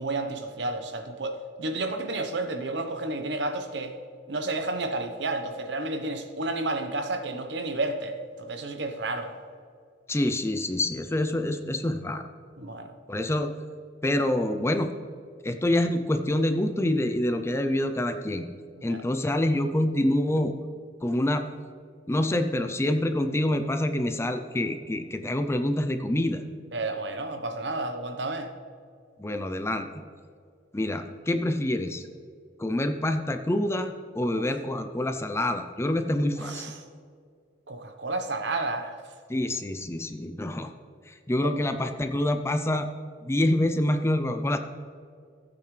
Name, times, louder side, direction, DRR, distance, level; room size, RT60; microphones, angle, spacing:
voice 1, 0.0-3.9 4.3-9.3 12.6-12.9 18.8-19.0 26.7-28.5 34.3-34.4 36.4-36.8 37.7-39.0 41.4-41.6, right 2 dB, 65° right, 6 dB, 1.0 m, -31 dB
voice 2, 10.1-12.3 13.1-13.5 14.0-14.9 15.4-18.5 18.8-20.5 21.0-21.4 22.1-26.4 29.2-29.9 30.7-32.1 32.6-36.7 39.3-40.7 41.1-42.9 43.2-44.6, left 1 dB, 15° left, 8 dB, 0.5 m, -26 dB
15.5 x 8.6 x 3.3 m, 2.2 s
head